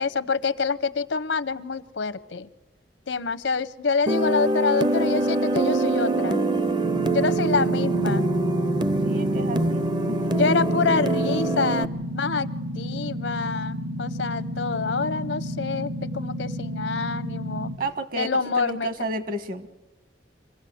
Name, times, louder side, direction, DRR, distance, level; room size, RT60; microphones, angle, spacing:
voice 1, 0.0-2.5 3.1-6.4 7.1-8.3 10.3-11.9 12.1-12.5 12.7-17.7 18.2-18.9, left 4 dB, 80° left, 13 dB, 0.8 m, -26 dB
sound 1, 4.1-11.9, right 2 dB, 25° right, 0.6 m, -24 dB
sound 2, 6.8-17.8, equal, 75° right, 2.0 m, -32 dB
voice 2, 9.0-10.5 17.8-19.7, right 2 dB, 50° right, 11 dB, 1.5 m, -32 dB
25.0 x 16.5 x 7.8 m, 1.2 s
head